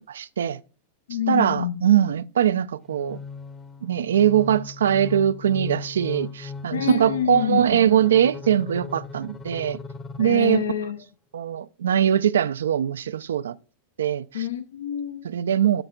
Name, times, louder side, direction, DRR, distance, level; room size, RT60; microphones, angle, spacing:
voice 1, 0.1-0.6 1.3-3.2 3.8-9.8 10.2-10.6 11.3-13.5 14.0-14.5 15.2-15.8, right 10 dB, 65° right, 0.4 m, -22 dB
voice 2, 1.1-1.9 6.7-7.8 10.2-11.0 14.3-15.2, left 10 dB, 65° left, 0.5 m, -27 dB
sound 1, 2.9-10.8, left 4 dB, 20° left, 0.8 m, -38 dB
13.0 x 5.7 x 2.3 m
figure-of-eight pair, 90°, 0 cm